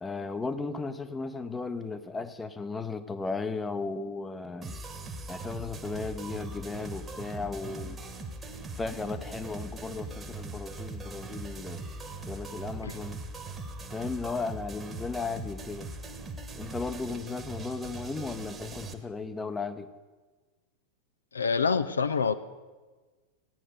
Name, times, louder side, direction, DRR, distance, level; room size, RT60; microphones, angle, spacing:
voice 1, 0.0-4.8 5.3-8.0 8.7-11.8 12.3-13.2 13.9-15.9 16.5-19.9, left 4 dB, 15° left, 11 dB, 0.9 m, -35 dB
sound 1, 4.6-18.9, right 2 dB, 15° right, 1.4 m, -40 dB
voice 2, 21.3-22.3, left 5 dB, 75° left, 11 dB, 0.6 m, -26 dB
16.0 x 9.7 x 6.6 m, 1.3 s
figure-of-eight pair, 90°, 0 cm